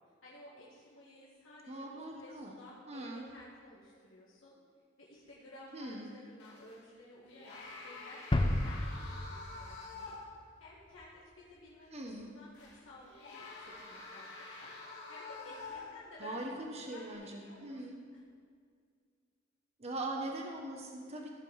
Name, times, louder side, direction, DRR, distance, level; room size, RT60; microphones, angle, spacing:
voice 1, 0.2-4.6 5.0-8.2 8.6-10.2 10.6-11.1 11.5-12.5 12.8-14.3 14.6-14.7 15.1-16.4 16.7-17.9 18.1-18.2 21.1-21.3, left 1 dB, 90° left, -7 dB, 2.0 m, -54 dB
voice 2, 1.7-2.5 2.9-3.2 5.7-6.1 11.9-12.3 16.2-18.0 19.8-21.3, right 2 dB, 35° right, 1 dB, 1.1 m, -41 dB
sound 1, 6.4-6.8 7.3-10.5 10.9-11.0 12.5-16.2 16.9-17.1, left 3 dB, 60° left, 2.2 m, -48 dB
sound 2, 8.3-11.0, left 1 dB, 25° left, 0.5 m, -33 dB
15.0 x 5.2 x 5.6 m, 2.1 s
head